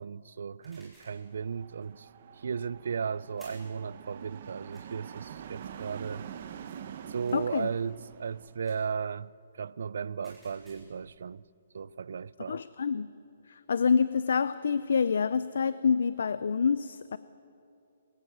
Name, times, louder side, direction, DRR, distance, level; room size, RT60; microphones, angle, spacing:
voice 1, 0.0-2.1 2.4-6.3 7.1-11.4 11.7-12.6, right 6 dB, 55° right, 0.4 m, -35 dB
sound 1, 0.6-1.2 3.4-3.8 4.7-4.8 7.2-7.6 8.6-8.9 10.2-11.0, right 1 dB, ahead, 4.0 m, -57 dB
sound 2, 1.2-8.6, right 8 dB, 35° right, 0.8 m, -46 dB
voice 2, 7.3-7.7 12.5-13.1 13.5-17.2, left 6 dB, 60° left, 0.5 m, -27 dB
23.0 x 15.0 x 8.8 m
hypercardioid pair, 180°, 0 cm